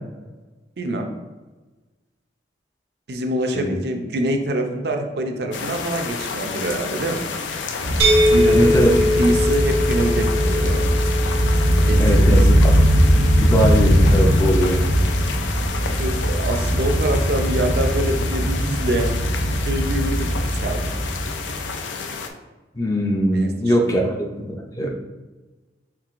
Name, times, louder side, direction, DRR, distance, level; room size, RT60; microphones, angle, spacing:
voice 1, 0.8-1.1 3.1-7.2 8.3-10.9 11.9-12.6 16.0-20.9 23.3-24.1, right 1 dB, 65° right, 4 dB, 0.5 m, -25 dB
sound 1, 5.5-22.3, left 5 dB, 90° left, 0.4 m, -30 dB
sound 2, 7.8-21.6, equal, 55° left, 1.4 m, -19 dB
sound 3, 8.0-13.8, left 1 dB, 90° right, 0.9 m, -22 dB
voice 2, 8.5-9.0 12.0-12.7 13.4-14.8 22.8-24.9, equal, 20° left, 1 dB, 0.4 m, -21 dB
4.5 x 3.8 x 2.5 m, 1.2 s
head